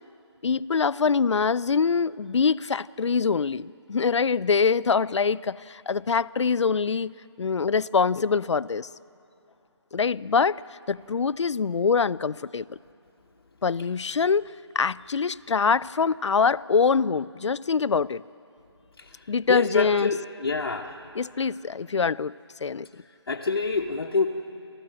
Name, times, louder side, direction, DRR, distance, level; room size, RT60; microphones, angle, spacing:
voice 1, 0.4-8.9 9.9-10.6 10.9-12.8 13.6-14.5 14.7-18.2 19.3-20.1 21.1-22.3 22.6-22.9, left 5 dB, 85° left, 20 dB, 0.5 m, -24 dB
voice 2, 19.5-21.0 23.3-24.3, left 4 dB, 55° left, -2 dB, 1.2 m, -27 dB
28.0 x 14.5 x 7.7 m, 2.9 s
figure-of-eight pair, 175°, 15 cm